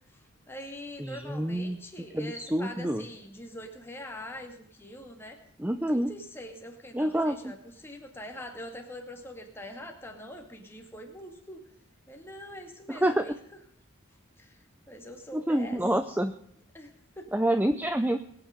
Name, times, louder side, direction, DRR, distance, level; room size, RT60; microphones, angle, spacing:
voice 1, 0.1-5.4 5.9-11.6 12.1-13.4 14.4-14.6 14.9-15.8 16.7-17.3, left 1 dB, 10° left, 3 dB, 2.2 m, -44 dB
voice 2, 1.0-1.8 2.1-3.0 5.6-6.1 6.9-7.5 12.9-13.3 15.3-16.3 17.3-18.2, right 1 dB, 10° right, 9 dB, 0.5 m, -27 dB
21.5 x 9.1 x 5.1 m, 0.70 s
head